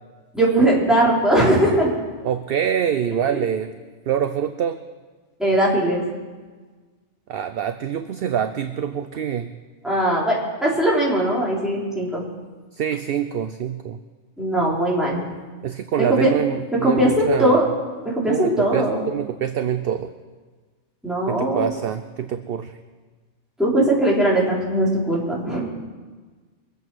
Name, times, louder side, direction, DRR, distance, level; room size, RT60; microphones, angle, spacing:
voice 1, 0.3-1.9 3.3-3.4 5.4-6.0 9.8-12.2 14.4-15.2 16.1-16.3 16.8-17.6 18.2-19.1 21.0-21.7 23.6-25.7, right 1 dB, ahead, -6 dB, 3.9 m, -19 dB
voice 2, 2.2-3.7 4.1-4.8 7.3-9.5 12.7-14.0 15.6-17.6 18.3-20.1 21.3-22.8, right 9 dB, 60° right, 10 dB, 0.7 m, -25 dB
23.5 x 8.2 x 6.2 m, 1.4 s
omnidirectional pair, 1.2 m